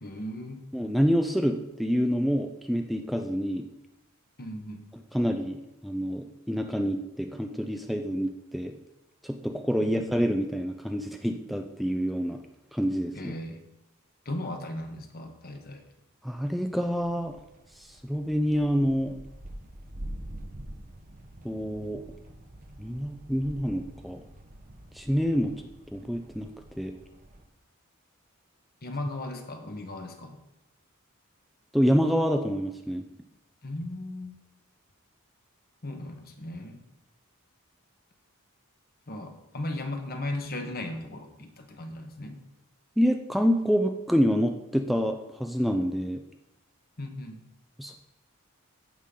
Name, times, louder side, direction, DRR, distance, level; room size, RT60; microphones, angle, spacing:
voice 1, 0.0-0.6 4.4-4.8 9.8-10.1 13.1-13.6 14.2-15.8 28.8-30.4 33.6-34.3 35.8-36.8 39.1-42.4 47.0-47.4, left 1 dB, 45° left, 5 dB, 1.2 m, -37 dB
voice 2, 0.7-3.7 5.1-8.7 9.2-12.4 12.7-13.3 16.2-17.4 17.8-19.2 21.4-22.0 22.8-24.2 24.9-25.5 25.9-26.5 26.8-26.9 31.7-33.1 43.0-46.2 47.8-47.9, equal, ahead, 4 dB, 0.4 m, -27 dB
sound 1, 16.7-27.5, right 1 dB, 40° right, 1.0 m, -46 dB
15.0 x 5.7 x 3.7 m, 0.93 s
head